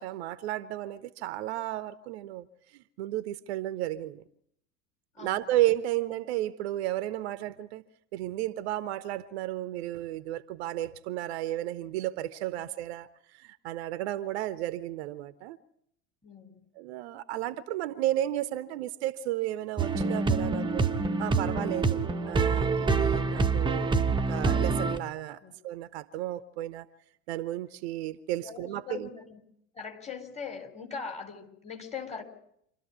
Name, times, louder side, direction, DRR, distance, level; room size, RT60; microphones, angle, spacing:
voice 1, 0.0-4.2 5.2-7.8 8.1-15.6 16.7-20.9 21.2-24.0 24.3-26.9 27.3-29.1, right 14 dB, 55° right, 0.9 m, -33 dB
voice 2, 16.2-16.6 25.4-25.5 28.4-29.4 29.7-32.2, left 6 dB, 15° left, 4.1 m, -41 dB
sound 1, 19.8-25.0, right 4 dB, 10° right, 1.1 m, -26 dB
26.5 x 13.0 x 9.5 m
figure-of-eight pair, 75°, 39 cm